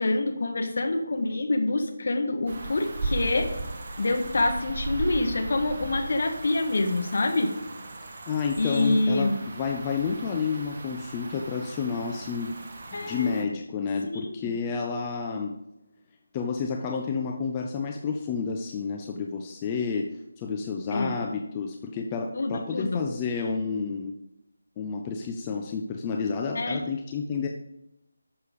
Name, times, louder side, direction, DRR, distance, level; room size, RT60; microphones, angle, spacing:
voice 1, 0.0-3.5 4.0-7.5 8.6-9.3 12.9-13.5 14.0-14.4 20.9-21.2 22.3-23.0 26.5-26.8, left 2 dB, 50° left, 5 dB, 1.8 m, -26 dB
sound 1, 2.5-13.4, right 2 dB, 40° right, 1.5 m, -37 dB
voice 2, 8.3-12.6 12.9-15.5 16.3-24.1 24.8-27.5, left 5 dB, 20° left, 2 dB, 0.7 m, -30 dB
12.5 x 6.8 x 5.2 m, 0.86 s
figure-of-eight pair, 160°, 0 cm